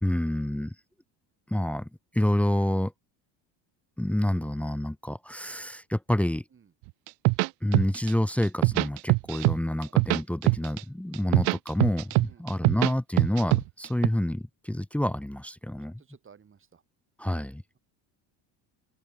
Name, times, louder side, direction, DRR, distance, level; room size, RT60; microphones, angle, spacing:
voice 1, 0.0-0.7 1.5-1.9 2.1-2.9 4.0-6.4 7.6-16.0 17.2-17.6, left 1 dB, 5° left, 1.5 m, -28 dB
sound 1, 7.1-8.1 8.4-9.6 9.8-10.8 11.1-12.9 13.2-14.1, right 28 dB, 75° right, 0.6 m, -22 dB
voice 2, 16.0-16.8, right 7 dB, 25° right, 7.8 m, -56 dB
open air
cardioid pair, 155°, 45 cm